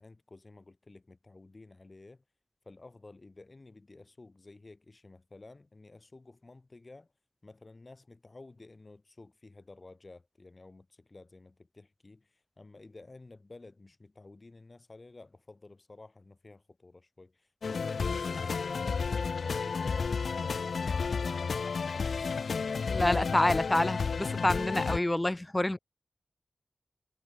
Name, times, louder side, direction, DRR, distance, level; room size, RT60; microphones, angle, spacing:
voice 1, 0.0-2.2 2.6-7.1 7.4-22.5 25.7-25.8, left 3 dB, 45° left, 7.3 m, -52 dB
sound 1, 17.6-25.0, left 5 dB, 85° left, 0.3 m, -32 dB
voice 2, 22.9-25.8, left 1 dB, 20° left, 0.6 m, -27 dB
wide cardioid pair, 60°, 0 cm